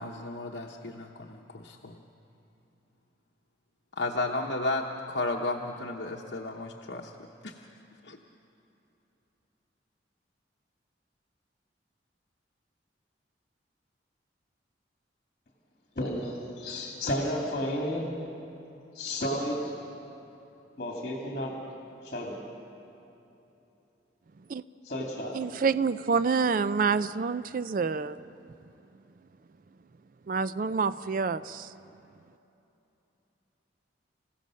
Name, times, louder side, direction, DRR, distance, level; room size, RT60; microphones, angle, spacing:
voice 1, 0.0-2.0 4.0-7.1 7.4-7.5 8.0-8.2, left 2 dB, 70° left, 0 dB, 1.0 m, -33 dB
voice 2, 15.9-18.1 18.9-19.7 20.8-21.6 22.0-22.4 24.8-25.4, left 1 dB, 45° left, -1 dB, 2.5 m, -32 dB
voice 3, 25.3-28.2 30.3-31.7, right 5 dB, 45° right, 14 dB, 0.4 m, -27 dB
27.5 x 16.0 x 6.4 m, 3.0 s
head